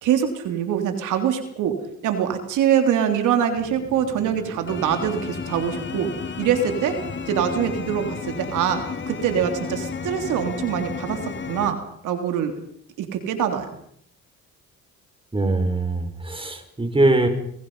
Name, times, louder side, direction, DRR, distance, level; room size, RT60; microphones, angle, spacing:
voice 1, 0.0-1.7 2.0-6.1 6.4-7.0 7.3-8.8 9.1-11.8 12.0-12.5 13.0-13.6, right 9 dB, 90° right, 6 dB, 3.4 m, -23 dB
sound 1, 3.5-11.7, left 5 dB, 40° left, 2.3 m, -33 dB
voice 2, 15.3-17.3, right 2 dB, 15° right, 7 dB, 5.6 m, -21 dB
29.0 x 22.0 x 5.7 m, 0.68 s
cardioid pair, 90°, 30 cm